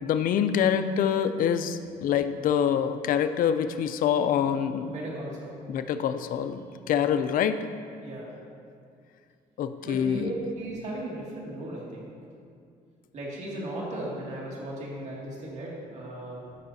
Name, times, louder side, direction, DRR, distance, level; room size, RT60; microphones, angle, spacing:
voice 1, 0.0-4.9 5.7-7.6 9.6-10.3, left 8 dB, 65° left, 10 dB, 0.4 m, -26 dB
voice 2, 4.8-5.5 8.0-8.3 9.8-12.1 13.1-16.4, right 1 dB, 50° right, -4 dB, 2.1 m, -36 dB
13.5 x 5.6 x 2.7 m, 2.3 s
cardioid pair, 105°, 15 cm